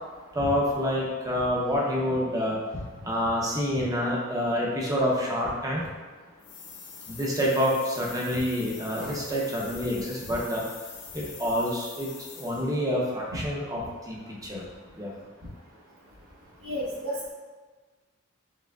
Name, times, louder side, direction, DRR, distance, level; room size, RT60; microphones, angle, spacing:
voice 1, 0.3-2.6 3.0-5.8 7.1-10.6 11.1-14.6 15.0-15.1, equal, 15° right, -3 dB, 0.7 m, -27 dB
sound 1, 6.4-12.8, left 6 dB, 90° left, 0.7 m, -44 dB
voice 2, 16.6-17.3, equal, 65° right, -6 dB, 1.0 m, -33 dB
4.6 x 3.6 x 2.3 m, 1.3 s
head